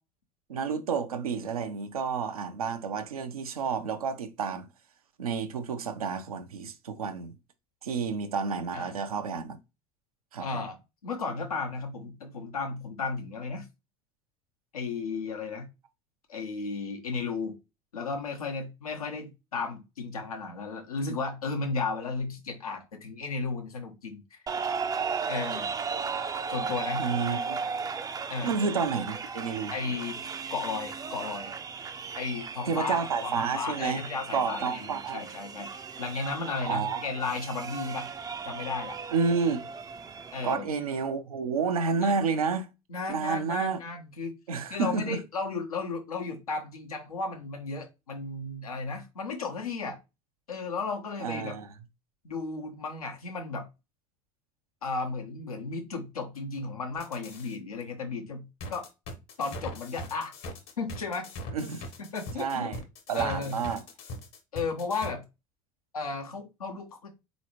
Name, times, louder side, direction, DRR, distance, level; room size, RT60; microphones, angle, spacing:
voice 1, 0.5-4.7 5.2-7.3 7.8-9.6 10.3-10.6 27.0-27.6 28.4-29.7 32.7-34.0 34.3-35.2 36.6-37.0 39.1-39.7 40.4-42.7 43.1-43.8 44.5-45.2 51.2-51.7 61.5-61.9 62.4-62.8 63.1-63.8, right 5 dB, 85° right, 0.7 m, -30 dB
voice 2, 10.4-10.7 11.0-13.7 14.7-15.7 16.3-17.6 17.9-24.4 25.3-25.7 26.5-27.1 28.3-28.5 29.7-30.2 30.5-31.5 32.2-38.1 38.4-39.0 40.3-40.7 42.0-42.2 42.9-44.3 44.7-50.0 50.5-51.6 52.2-53.7 54.8-58.9 59.4-60.3 60.8-61.3 62.0-62.7 63.1-63.6 64.5-65.2 65.9-67.1, left 4 dB, 90° left, 0.9 m, -34 dB
sound 1, 24.5-40.5, right 5 dB, 20° right, 0.4 m, -36 dB
sound 2, 56.9-57.6 58.6-65.1, left 1 dB, 60° left, 1.1 m, -40 dB
4.0 x 3.0 x 3.0 m
hypercardioid pair, 75°, 18 cm